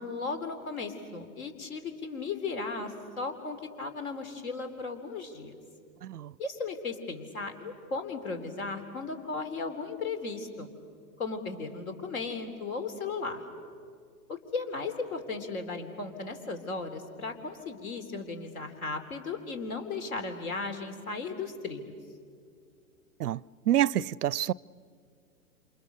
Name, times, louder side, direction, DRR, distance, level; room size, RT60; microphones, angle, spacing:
voice 1, 0.0-5.5 6.4-10.7 11.2-13.4 14.3-22.0, left 4 dB, 65° left, 3.6 m, -36 dB
voice 2, 23.7-24.5, right 12 dB, 85° right, 0.6 m, -27 dB
28.0 x 27.5 x 6.8 m
hypercardioid pair, 120°, 45 cm